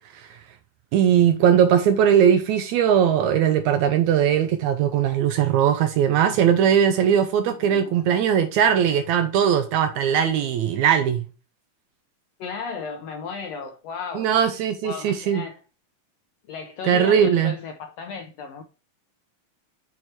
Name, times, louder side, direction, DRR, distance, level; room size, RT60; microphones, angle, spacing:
voice 1, 0.9-11.2 14.2-15.4 16.8-17.5, right 8 dB, 80° right, 1.8 m, -19 dB
voice 2, 7.6-8.0 12.4-14.3 14.8-15.6 16.5-18.6, left 5 dB, 75° left, 1.5 m, -34 dB
6.3 x 4.7 x 4.2 m
omnidirectional pair, 3.8 m